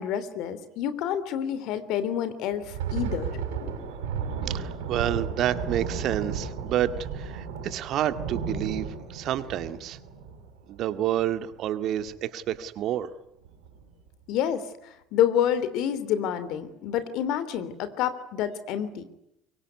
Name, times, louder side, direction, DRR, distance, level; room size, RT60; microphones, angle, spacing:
voice 1, 0.0-3.3 14.3-19.0, left 9 dB, 65° left, 14 dB, 3.2 m, -28 dB
Thunder, 2.5-11.6 11.9-12.1 12.5-12.8 13.4-13.9, right 6 dB, 80° right, 6.3 m, -34 dB
voice 2, 4.5-10.0 10.7-13.1, right 11 dB, 60° right, 11 dB, 2.0 m, -29 dB
24.5 x 23.0 x 9.6 m, 0.82 s
hypercardioid pair, 70°, 0 cm